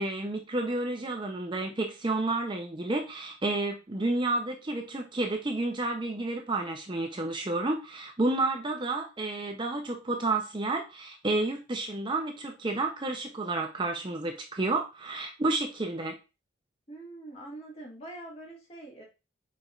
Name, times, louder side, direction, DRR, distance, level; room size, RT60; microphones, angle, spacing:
voice 1, 0.0-16.2, right 2 dB, 25° right, 3 dB, 0.5 m, -30 dB
voice 2, 16.9-19.0, right 2 dB, 30° left, -2 dB, 1.8 m, -44 dB
5.0 x 4.2 x 2.4 m, 0.28 s
head